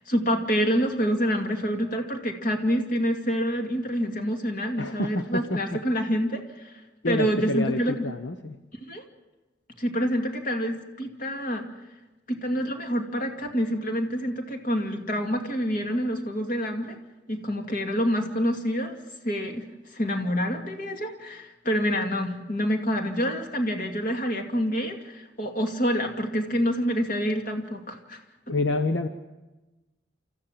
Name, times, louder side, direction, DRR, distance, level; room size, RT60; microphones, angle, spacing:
voice 1, 0.1-6.7 7.0-8.0 8.8-9.0 9.8-11.7 12.3-17.0 17.3-19.0 19.2-19.7 19.9-28.2, equal, 50° left, 3 dB, 2.5 m, -27 dB
voice 2, 4.8-5.8 7.0-8.6 28.5-29.1, left 2 dB, 80° left, 8 dB, 0.9 m, -28 dB
29.0 x 14.0 x 7.4 m, 1.1 s
head